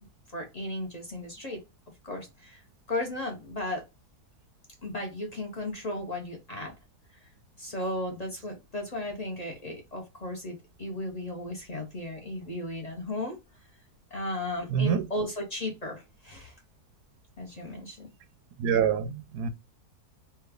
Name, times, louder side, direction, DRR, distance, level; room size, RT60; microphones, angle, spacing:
voice 1, 0.3-1.6 2.0-2.6 2.9-3.8 4.8-6.7 7.6-13.4 14.1-16.6 17.4-18.1, left 1 dB, 40° left, 0.6 m, -35 dB
voice 2, 14.7-15.1 18.6-19.5, right 8 dB, 85° right, 1.1 m, -26 dB
3.3 x 2.3 x 3.3 m
omnidirectional pair, 1.7 m